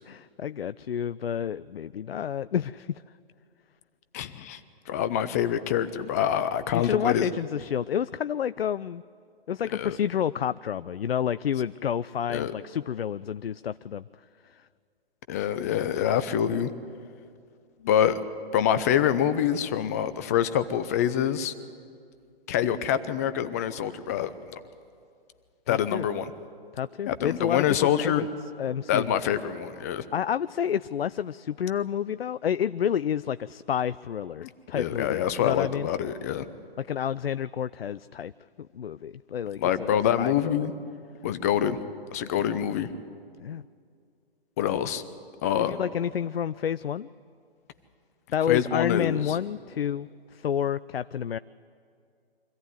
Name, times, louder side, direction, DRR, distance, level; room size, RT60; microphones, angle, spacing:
voice 1, 0.1-3.0 6.7-9.0 9.5-14.1 14.4-14.7 25.7-26.1 26.7-28.3 28.6-29.3 30.1-35.9 36.8-38.3 38.7-40.7 43.4-43.6 45.6-47.1 48.3-51.4, left 9 dB, 70° left, 16 dB, 0.5 m, -29 dB
voice 2, 4.1-4.6 4.9-7.3 9.7-10.0 12.3-12.5 15.3-16.7 17.8-18.2 18.5-21.5 22.5-24.6 25.7-26.3 27.1-28.3 28.9-30.0 34.4-36.5 39.6-40.7 41.2-41.8 42.1-42.9 44.6-45.0 45.4-45.8 48.5-49.3, left 9 dB, 15° left, 13 dB, 0.5 m, -26 dB
24.5 x 14.5 x 9.5 m, 2.3 s
figure-of-eight pair, 130°, 31 cm